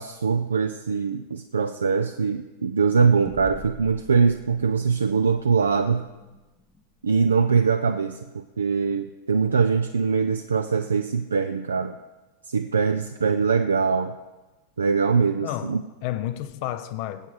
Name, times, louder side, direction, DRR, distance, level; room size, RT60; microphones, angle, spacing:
voice 1, 0.0-6.1 7.0-12.0 12.5-14.2 14.8-15.8, right 5 dB, 70° right, 0.4 m, -22 dB
sound 1, 3.2-8.1, left 2 dB, 15° left, 0.8 m, -47 dB
voice 2, 15.4-17.3, left 13 dB, 45° left, 0.5 m, -31 dB
20.0 x 8.3 x 4.7 m
figure-of-eight pair, 90°, 0 cm